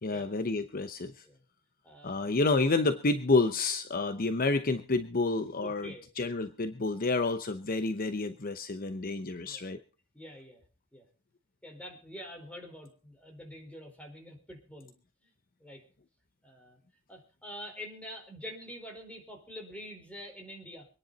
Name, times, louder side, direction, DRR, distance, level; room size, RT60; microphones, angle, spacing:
voice 1, 0.0-1.2 2.0-9.8, left 3 dB, 45° left, 10 dB, 0.8 m, -29 dB
voice 2, 1.8-2.3 5.6-6.0 9.4-9.9 10.1-10.6 10.9-11.0 11.6-14.9 15.2-15.3 15.6-15.8 16.4-16.8 17.1-20.9, equal, 5° left, 2 dB, 4.6 m, -46 dB
24.5 x 10.5 x 4.1 m, 0.34 s
head